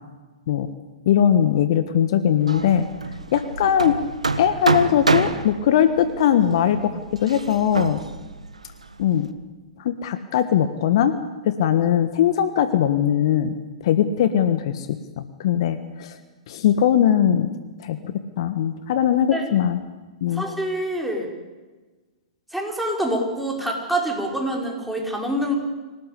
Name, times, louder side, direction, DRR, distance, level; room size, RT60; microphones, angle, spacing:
voice 1, 1.0-2.9 3.3-4.0 4.4-8.0 9.0-9.3 9.8-11.1 11.4-13.6 13.8-16.2 16.5-17.6 17.8-19.8 20.2-20.4, left 9 dB, 55° left, 10 dB, 1.5 m, -20 dB
Hammer, 2.4-9.3, right 3 dB, 85° right, 1.6 m, -27 dB
voice 2, 20.3-21.3 22.5-25.6, right 1 dB, ahead, -1 dB, 5.5 m, -26 dB
25.5 x 18.0 x 8.4 m, 1.3 s
figure-of-eight pair, 110°, 3 cm